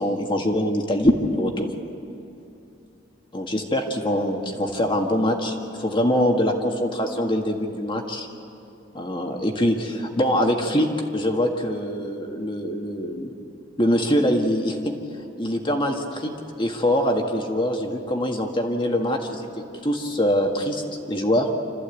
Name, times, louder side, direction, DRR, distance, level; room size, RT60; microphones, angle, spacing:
voice 1, 0.0-1.7 3.3-8.3 8.9-10.9 11.1-13.3 13.8-14.9 15.4-16.3 16.6-19.5 19.8-21.5, equal, 25° left, 2 dB, 1.8 m, -23 dB
27.0 x 14.0 x 8.4 m, 2.7 s
head